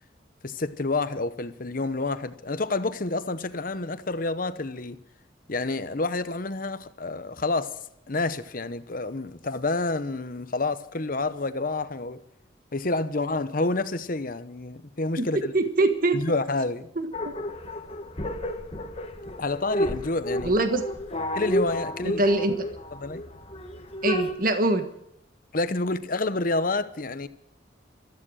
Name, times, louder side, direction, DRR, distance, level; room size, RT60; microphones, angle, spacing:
voice 1, 0.4-5.0 5.5-7.7 8.1-12.2 12.7-15.5 16.1-16.9 19.4-20.5 21.3-22.2 23.0-23.2 25.5-27.3, left 2 dB, 45° left, 1.0 m, -28 dB
voice 2, 15.5-16.2 17.0-17.3 20.4-20.8 22.2-22.7 24.0-24.9, right 2 dB, 50° right, 1.5 m, -23 dB
sound 1, 17.1-24.3, left 1 dB, 30° left, 1.5 m, -31 dB
15.5 x 14.0 x 6.4 m
head